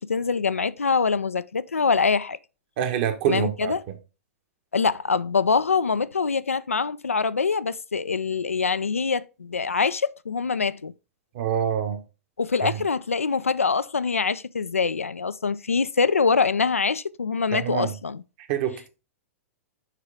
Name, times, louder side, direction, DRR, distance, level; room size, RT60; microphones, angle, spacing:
voice 1, 0.0-2.4 3.3-3.8 4.7-10.9 12.4-18.2, left 5 dB, 75° left, 0.4 m, -24 dB
voice 2, 2.8-3.7 11.3-12.0 12.6-12.7 17.5-17.9 18.5-18.9, right 9 dB, 45° right, 1.3 m, -25 dB
6.5 x 4.8 x 4.9 m
figure-of-eight pair, 105°, 7 cm